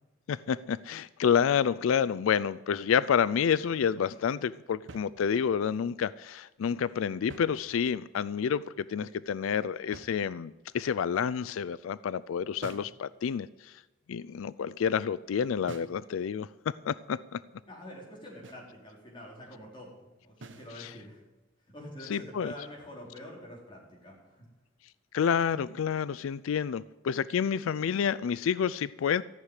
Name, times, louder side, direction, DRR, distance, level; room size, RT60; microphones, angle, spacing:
voice 1, 0.3-13.8 14.1-17.4 20.8-20.9 22.1-22.5 25.1-29.2, left 7 dB, 85° left, 18 dB, 0.4 m, -29 dB
sound 1, 4.9-5.7 7.1-8.1 9.9-10.7 12.6-13.0 15.7-16.1 18.4-18.8 20.4-20.8, right 2 dB, 65° right, 1.0 m, -48 dB
voice 2, 17.7-21.2 21.7-24.5, left 1 dB, 25° left, -3 dB, 4.1 m, -46 dB
14.0 x 6.6 x 9.8 m, 1.1 s
head